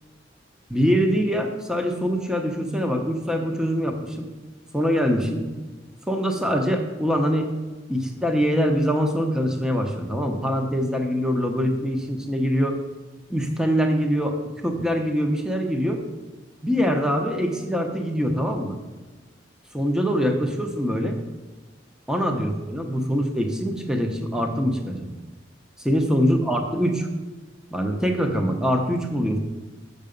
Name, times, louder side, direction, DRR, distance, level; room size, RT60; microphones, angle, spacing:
voice 1, 0.7-4.3 4.7-5.5 6.1-7.5 7.9-12.8 13.3-16.0 16.6-18.8 19.7-21.2 22.1-25.1 25.8-27.1 27.7-29.4, equal, 5° right, 3 dB, 0.8 m, -23 dB
8.1 x 6.7 x 5.1 m, 1.2 s
head